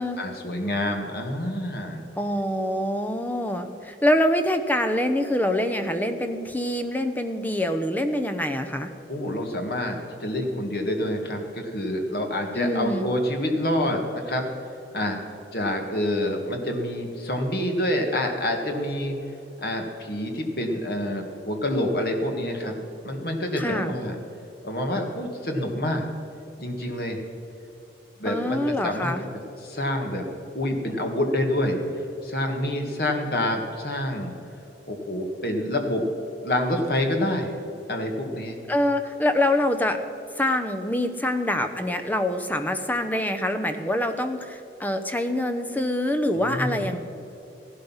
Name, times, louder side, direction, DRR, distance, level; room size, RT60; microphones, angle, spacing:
voice 1, 0.2-2.0 9.1-14.5 14.9-15.2 15.5-19.2 19.6-22.7 23.0-24.2 24.6-26.1 26.6-27.2 28.2-29.1 29.6-30.3 30.5-31.8 32.2-34.3 34.9-36.1 36.4-37.5 37.9-38.6 46.3-47.0, left 1 dB, 55° left, 3 dB, 1.9 m, -27 dB
voice 2, 2.2-8.9 12.5-13.1 23.6-23.9 28.2-29.2 38.7-40.0 40.4-47.0, left 1 dB, 10° left, 7 dB, 0.8 m, -25 dB
16.0 x 11.5 x 5.7 m, 2.9 s
head